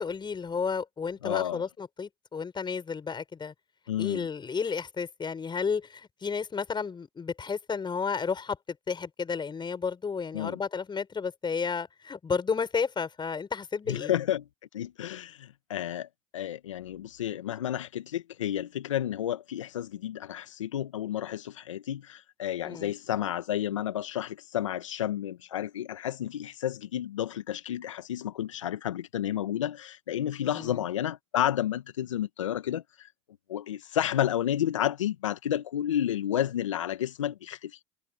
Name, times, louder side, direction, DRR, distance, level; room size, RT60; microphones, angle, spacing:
voice 1, 0.0-3.5 4.0-14.1 22.6-22.9 30.5-30.8, left 5 dB, 30° left, 6.7 m, -32 dB
voice 2, 1.2-1.6 3.9-4.3 10.3-10.6 13.9-14.4 14.7-33.1 33.5-37.8, left 11 dB, 90° left, 1.3 m, -31 dB
hypercardioid pair, 70°, 16 cm